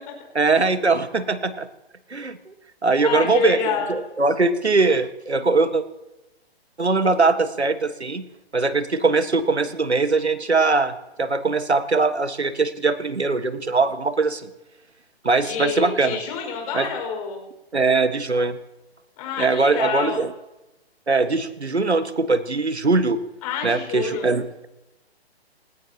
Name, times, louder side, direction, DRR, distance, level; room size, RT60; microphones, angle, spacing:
voice 1, 0.3-1.7 2.1-2.5 2.8-5.8 6.8-8.2 8.5-14.5 15.2-16.2 16.7-16.9 17.7-18.6 19.4-20.3 21.1-23.2 23.6-24.7, right 3 dB, 90° right, 11 dB, 1.6 m, -21 dB
voice 2, 3.0-3.9 15.4-17.4 19.2-20.2 23.4-24.3, left 6 dB, 35° left, 1 dB, 5.4 m, -27 dB
29.5 x 17.0 x 2.9 m, 1.0 s
figure-of-eight pair, 130°, 32 cm